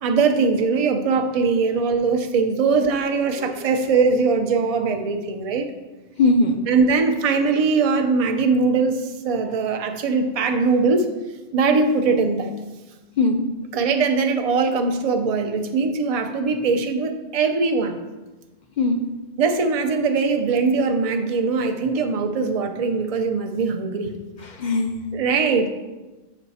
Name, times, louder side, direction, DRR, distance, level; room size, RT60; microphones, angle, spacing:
voice 1, 0.0-5.7 6.7-11.1 11.5-12.5 13.7-18.0 19.4-24.1 25.1-25.7, right 4 dB, 40° right, 5 dB, 0.6 m, -21 dB
voice 2, 3.3-3.8 6.2-6.7 13.2-13.5 18.8-19.1 24.4-25.0, left 2 dB, 55° left, 5 dB, 0.6 m, -21 dB
7.1 x 5.6 x 4.1 m, 1.2 s
omnidirectional pair, 1.2 m